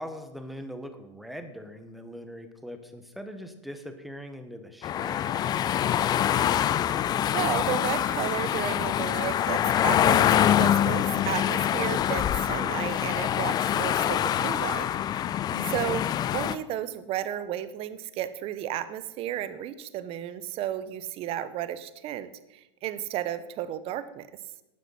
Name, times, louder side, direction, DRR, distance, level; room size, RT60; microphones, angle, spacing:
voice 1, 0.0-5.6 15.5-16.1, equal, ahead, 7 dB, 1.4 m, -41 dB
sound 1, 4.8-16.5, left 10 dB, 25° left, 0.5 m, -25 dB
voice 2, 7.3-14.9 15.4-16.1 16.3-24.3, right 11 dB, 40° right, 14 dB, 0.9 m, -33 dB
12.5 x 9.2 x 5.7 m, 0.97 s
hypercardioid pair, 110°, 16 cm